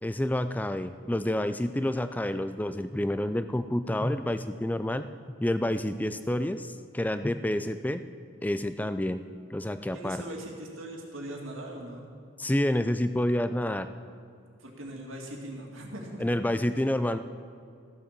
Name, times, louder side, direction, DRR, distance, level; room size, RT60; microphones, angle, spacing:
voice 1, 0.0-5.1 5.4-8.0 8.4-9.2 9.5-10.2 12.4-13.9 16.2-17.2, left 1 dB, 10° left, 11 dB, 0.3 m, -28 dB
voice 2, 9.9-12.1 14.6-16.2, right 1 dB, 85° right, 0 dB, 2.3 m, -40 dB
14.5 x 7.4 x 6.7 m, 2.5 s
head